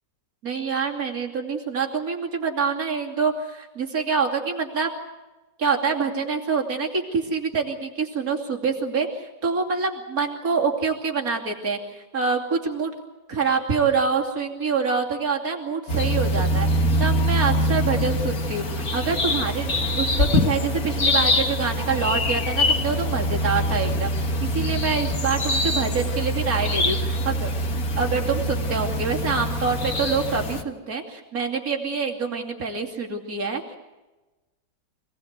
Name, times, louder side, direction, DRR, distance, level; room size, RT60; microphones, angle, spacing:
voice 1, 0.4-4.9 5.6-12.9 13.3-27.5 28.0-33.8, right 5 dB, 55° right, 1 dB, 3.2 m, -26 dB
sound 1, 15.9-30.6, left 1 dB, 55° left, 2.1 m, -24 dB
27.0 x 19.0 x 8.1 m, 1.1 s
omnidirectional pair, 1.9 m